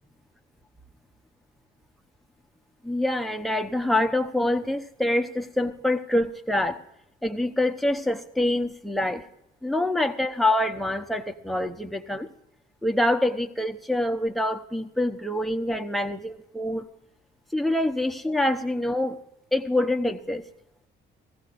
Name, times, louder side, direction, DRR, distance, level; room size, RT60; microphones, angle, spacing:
voice 1, 2.8-6.8 7.2-9.2 9.6-12.3 12.8-16.9 17.5-19.2 19.5-20.4, left 1 dB, ahead, 4 dB, 0.8 m, -25 dB
18.5 x 15.5 x 2.5 m, 0.86 s
cardioid pair, 90°, 20 cm